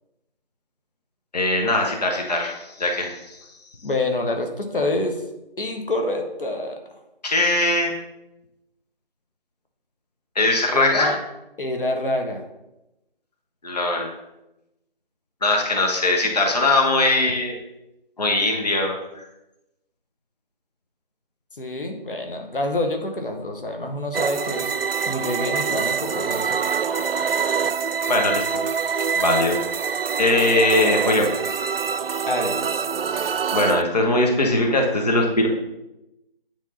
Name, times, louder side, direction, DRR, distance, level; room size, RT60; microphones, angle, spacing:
voice 1, 1.3-3.4 7.2-7.9 10.3-11.1 13.6-14.1 15.4-17.6 18.2-19.2 28.1-28.6 29.2-29.6 30.2-31.3 33.1-35.5, left 2 dB, 45° left, 1 dB, 1.1 m, -21 dB
voice 2, 3.8-5.2 5.6-6.8 10.7-11.2 11.6-12.4 21.5-24.7 25.1-26.6 32.3-32.7, left 1 dB, 65° left, 4 dB, 1.2 m, -27 dB
sound 1, 24.1-33.8, right 6 dB, 75° right, 0.4 m, -25 dB
9.1 x 3.5 x 5.5 m, 0.93 s
figure-of-eight pair, 170°, 29 cm